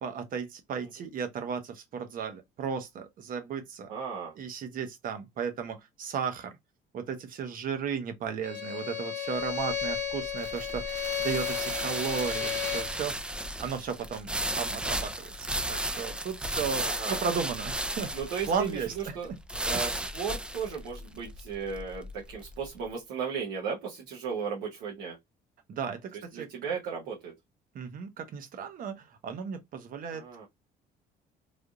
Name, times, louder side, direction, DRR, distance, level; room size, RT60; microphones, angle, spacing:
voice 1, 0.0-3.9 4.4-6.6 6.9-13.1 13.6-18.1 18.5-19.4 25.7-26.5 27.7-30.5, right 6 dB, 55° right, 0.9 m, -35 dB
voice 2, 3.9-4.3 16.8-17.2 18.1-19.3 19.6-25.2 26.3-27.3 30.1-30.5, right 6 dB, 90° right, 1.0 m, -35 dB
Bowed string instrument, 8.4-13.0, left 7 dB, 50° left, 0.9 m, -33 dB
sound 1, 9.4-22.7, right 1 dB, 5° right, 0.4 m, -35 dB
3.4 x 2.6 x 2.3 m
cardioid pair, 110°, 17 cm